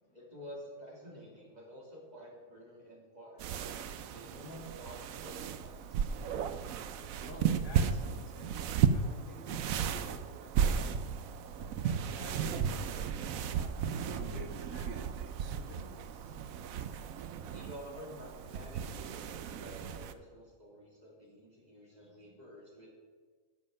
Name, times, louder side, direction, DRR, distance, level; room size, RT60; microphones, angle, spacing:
voice 1, 0.1-3.6 4.1-6.1 17.4-22.9, equal, 30° right, -3 dB, 2.9 m, -50 dB
sound 1, 3.4-20.1, right 7 dB, 90° right, 1.1 m, -34 dB
voice 2, 7.3-8.6 8.9-10.9 11.5-13.8 14.1-16.3 22.0-22.1, left 2 dB, 65° left, 3 dB, 1.8 m, -51 dB
11.5 x 7.6 x 5.3 m, 1.5 s
omnidirectional pair, 1.4 m